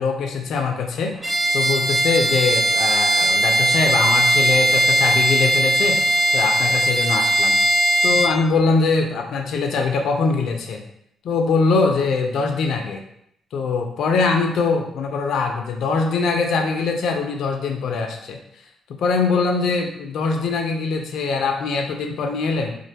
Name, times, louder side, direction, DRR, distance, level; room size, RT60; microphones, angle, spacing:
voice 1, 0.0-7.6 8.0-10.8 11.2-13.0 13.5-18.4 19.0-22.8, left 4 dB, 70° left, 4 dB, 0.3 m, -22 dB
Bowed string instrument, 1.2-8.4, right 1 dB, 25° right, 0.3 m, -19 dB
2.4 x 2.1 x 2.7 m, 0.74 s
cardioid pair, 90°, 0 cm